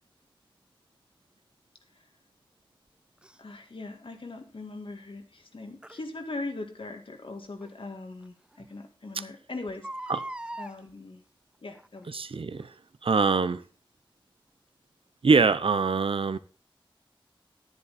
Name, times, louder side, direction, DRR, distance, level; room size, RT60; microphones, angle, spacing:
Crying sobbing, 3.2-3.4 5.8-6.0 7.6-7.7 8.2-8.3 8.5-8.6 9.7-10.8 11.7-12.0 12.6-12.7, right 1 dB, 10° right, 0.5 m, -39 dB
voice 1, 3.4-10.1 10.6-11.2 11.6-12.1, left 2 dB, 70° left, 2.0 m, -40 dB
voice 2, 12.1-12.7 13.0-13.6 15.2-16.4, right 4 dB, 80° right, 0.7 m, -24 dB
10.5 x 10.0 x 4.2 m
wide cardioid pair, 65°, 9 cm